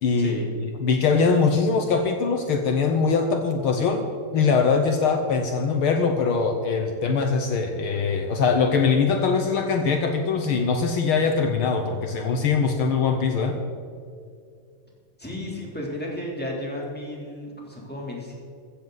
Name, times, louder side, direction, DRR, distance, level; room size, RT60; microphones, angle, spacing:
voice 1, 0.0-4.1 4.3-13.6, left 5 dB, 85° left, 5 dB, 1.1 m, -22 dB
voice 2, 15.2-18.3, left 1 dB, 5° left, -3 dB, 2.8 m, -33 dB
15.5 x 14.5 x 4.0 m, 2.3 s
omnidirectional pair, 3.7 m